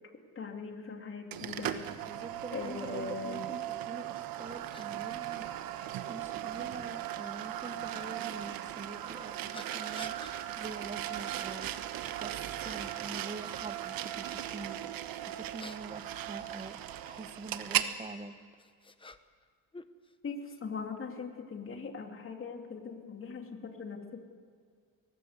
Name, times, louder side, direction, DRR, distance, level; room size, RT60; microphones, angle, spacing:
voice 1, 0.3-1.9 2.5-3.4 20.2-24.3, left 4 dB, 35° left, 4 dB, 3.0 m, -40 dB
sound 1, 1.3-17.9, right 12 dB, 85° right, 1.3 m, -38 dB
voice 2, 2.0-5.5 6.1-10.1 10.6-11.7 12.1-12.3 12.6-14.8 15.2-16.8 17.0-18.4, right 3 dB, 20° right, 11 dB, 1.1 m, -45 dB
sound 2, 4.1-4.2 4.7-4.9 5.8-5.9 7.9-8.1 9.5-10.4 11.0-11.2 11.6-12.1 12.6-13.1 15.3-17.2 18.2-19.5 19.7-20.6, left 3 dB, 15° left, 1.0 m, -52 dB
23.0 x 19.0 x 8.2 m, 2.1 s
cardioid pair, 125°, 34 cm